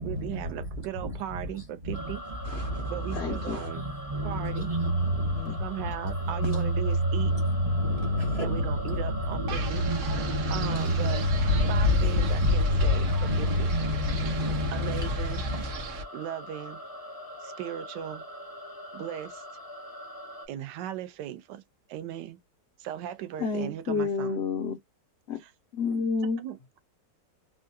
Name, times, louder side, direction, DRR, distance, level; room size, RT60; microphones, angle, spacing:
voice 1, 0.0-2.2 2.9-3.8 4.2-4.7 5.6-7.3 8.4-9.8 10.5-11.3 11.7-13.7 14.7-15.4 16.1-16.8 17.4-18.2 18.9-19.4 20.5-21.6 21.9-22.4 22.8-24.4 25.4-25.5 26.4-26.8, right 11 dB, 75° right, 1.2 m, -37 dB
sound 1, 1.9-20.5, equal, 25° left, 0.4 m, -42 dB
voice 2, 2.4-2.8 3.1-3.7 5.4-5.6 23.4-24.8 25.3-25.4 25.7-26.4, left 4 dB, 65° left, 0.6 m, -30 dB
voice 3, 4.1-4.9 6.4-6.7 7.9-8.6 9.3-9.5 9.8-10.9 11.6-11.7 12.1-12.3 13.0-15.1, equal, 45° right, 0.5 m, -28 dB
Wind, 9.5-16.0, left 3 dB, 60° right, 0.8 m, -30 dB
3.6 x 2.2 x 2.5 m
omnidirectional pair, 1.9 m